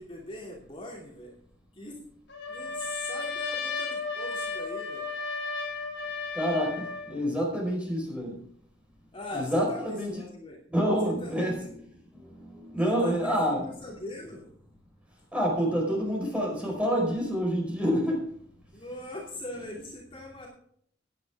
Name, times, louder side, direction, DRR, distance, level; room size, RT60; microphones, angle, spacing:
voice 1, 0.0-1.3 1.7-2.0 2.5-5.1 9.1-10.6 11.0-11.7 12.8-14.5 18.7-20.5, left 2 dB, 30° left, -2 dB, 2.9 m, -40 dB
Trumpet, 2.3-7.1, left 4 dB, 75° left, 4.8 m, -34 dB
voice 2, 6.3-8.4 9.3-10.1 10.7-11.8 12.1-13.6 15.3-18.3, equal, 5° right, -1 dB, 4.9 m, -28 dB
16.0 x 10.5 x 3.6 m, 0.63 s
head